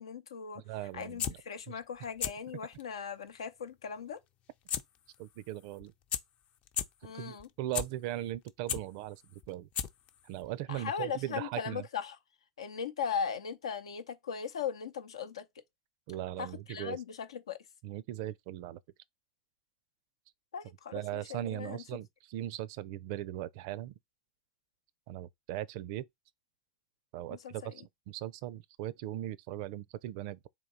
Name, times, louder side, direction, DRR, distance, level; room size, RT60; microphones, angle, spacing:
voice 1, 0.0-0.6 0.9-4.2 7.0-7.5 10.7-12.2 12.6-15.5 16.4-17.6 20.5-22.0 27.3-27.8, left 7 dB, 85° left, 0.6 m, -38 dB
voice 2, 0.6-1.4 1.7-1.8 5.2-5.9 7.0-9.7 10.2-11.8 16.1-17.0 17.8-18.8 20.9-23.9 25.1-26.1 27.1-30.5, right 14 dB, 65° right, 0.4 m, -39 dB
sound 1, 1.0-1.3 2.0-2.3 2.7-2.8 4.7-4.8 5.1-5.2 5.8-5.9 6.1-6.2 6.7-6.8 7.4-7.8 8.3-8.8 9.4-9.5 9.7-10.1 10.4-10.5, left 9 dB, 45° left, 0.6 m, -33 dB
3.7 x 2.8 x 4.0 m
hypercardioid pair, 90°, 3 cm